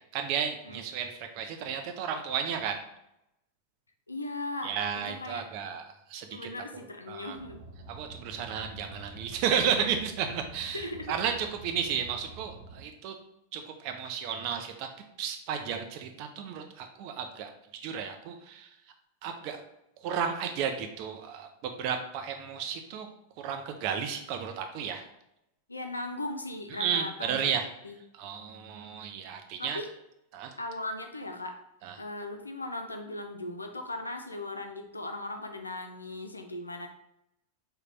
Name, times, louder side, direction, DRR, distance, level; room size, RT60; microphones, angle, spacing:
voice 1, 0.1-2.8 4.6-7.4 7.9-13.2 13.5-14.9 15.2-18.7 19.2-19.6 20.0-23.1 23.4-25.0 26.7-27.7 28.1-29.8 30.3-30.5 31.8-32.0, right 7 dB, 45° right, 5 dB, 0.5 m, -33 dB
voice 2, 4.1-5.5 6.3-7.6 10.7-11.2 25.7-27.5 27.8-27.9 29.6-29.9 30.6-31.6 32.0-36.9, left 2 dB, 80° left, 5 dB, 0.4 m, -38 dB
Car, 7.3-12.8, right 2 dB, 65° right, 1.0 m, -48 dB
3.6 x 2.2 x 3.2 m, 0.82 s
figure-of-eight pair, 90°, 0 cm